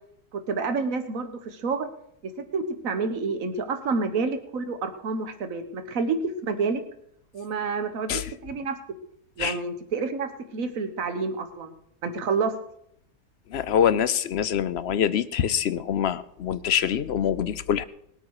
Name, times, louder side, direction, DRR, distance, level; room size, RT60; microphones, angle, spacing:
voice 1, 0.3-1.9 2.4-6.8 7.3-8.8 9.4-11.7 12.0-12.5, right 4 dB, 65° right, 9 dB, 1.6 m, -29 dB
voice 2, 13.5-17.8, left 9 dB, 60° left, 14 dB, 0.7 m, -25 dB
20.0 x 9.0 x 4.8 m, 0.74 s
omnidirectional pair, 1.5 m